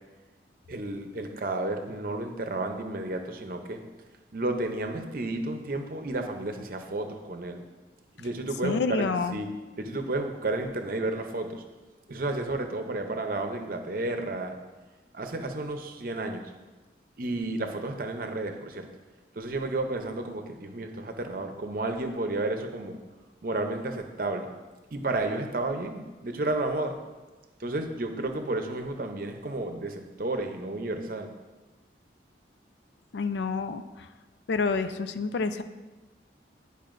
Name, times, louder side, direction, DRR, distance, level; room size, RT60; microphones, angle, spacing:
voice 1, 0.7-3.8 4.3-7.6 8.2-9.0 9.3-9.5 9.8-11.6 12.1-14.5 15.1-16.5 17.2-18.9 19.3-23.0 23.4-24.5 24.9-27.0 27.6-31.3, right 2 dB, 50° right, 5 dB, 0.6 m, -32 dB
voice 2, 8.6-9.4 33.1-34.1 34.5-35.6, left 4 dB, 70° left, 10 dB, 0.4 m, -28 dB
10.5 x 5.4 x 2.6 m, 1.2 s
head